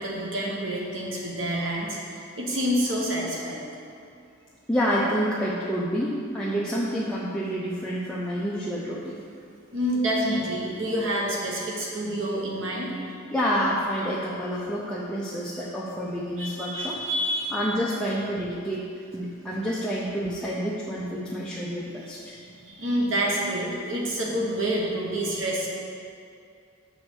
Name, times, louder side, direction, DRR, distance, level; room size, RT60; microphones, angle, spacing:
voice 1, 0.0-3.7 9.7-13.1 16.4-17.7 22.3-25.7, right 1 dB, 70° right, -3 dB, 1.0 m, -28 dB
voice 2, 4.7-9.2 13.3-17.0 17.5-18.8 19.1-22.4, equal, 5° left, -7 dB, 0.6 m, -28 dB
6.4 x 4.3 x 6.2 m, 2.4 s
head